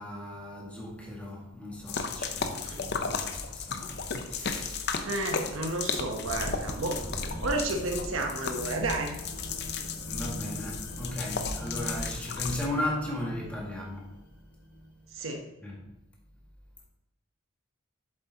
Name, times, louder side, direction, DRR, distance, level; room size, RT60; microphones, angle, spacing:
voice 1, 0.0-4.9 10.1-14.2 15.6-15.9, left 1 dB, 5° left, 1.9 m, -36 dB
sound 1, 1.9-12.7, left 5 dB, 55° left, 0.7 m, -35 dB
voice 2, 5.0-7.0 7.3-9.2 15.1-15.4, right 2 dB, 85° right, 1.0 m, -32 dB
sound 2, 6.2-15.1, equal, 70° left, 2.9 m, -42 dB
7.7 x 7.7 x 2.9 m
head